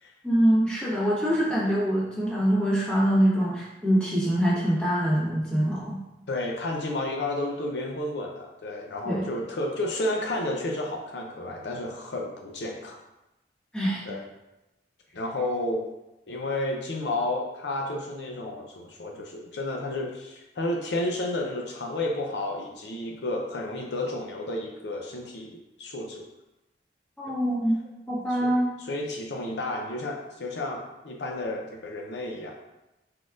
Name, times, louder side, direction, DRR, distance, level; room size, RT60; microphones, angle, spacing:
voice 1, 0.2-6.0 9.0-9.2 13.7-14.0 27.2-27.8 28.1-28.7, equal, 5° left, -7 dB, 1.2 m, -24 dB
voice 2, 6.3-13.0 14.0-14.2 15.1-15.8 16.3-26.3 27.2-27.3 28.4-32.5, left 1 dB, 70° left, 1 dB, 0.6 m, -31 dB
4.6 x 4.1 x 2.4 m, 0.97 s
head